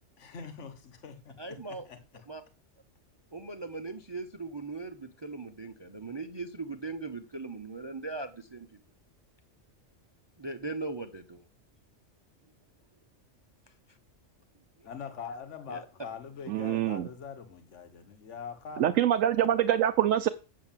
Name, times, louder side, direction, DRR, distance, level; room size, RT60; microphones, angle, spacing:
voice 1, 0.2-2.2 14.8-18.9, left 6 dB, 70° left, 1.5 m, -43 dB
voice 2, 1.4-1.9 2.3-2.4 3.3-8.7 10.4-11.4 14.8-14.9 15.7-15.8, right 3 dB, 25° right, 0.7 m, -39 dB
voice 3, 16.5-17.1 18.8-20.3, right 11 dB, 90° right, 1.1 m, -25 dB
8.1 x 7.5 x 7.4 m
omnidirectional pair, 1.3 m